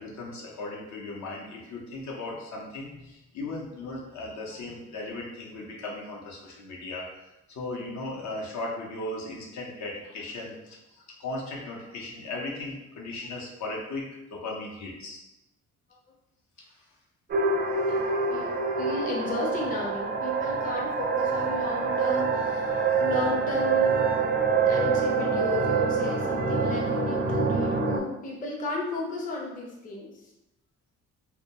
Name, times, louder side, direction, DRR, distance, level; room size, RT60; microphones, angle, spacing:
voice 1, 0.0-15.2 16.6-16.7, left 2 dB, 65° left, -2 dB, 0.7 m, -37 dB
sound 1, 17.3-28.0, right 4 dB, 35° right, 0.4 m, -26 dB
voice 2, 17.9-18.5 18.8-24.1 24.7-30.3, left 2 dB, 30° left, -2 dB, 0.5 m, -34 dB
2.2 x 2.1 x 2.8 m, 0.91 s
cardioid pair, 90°, 30 cm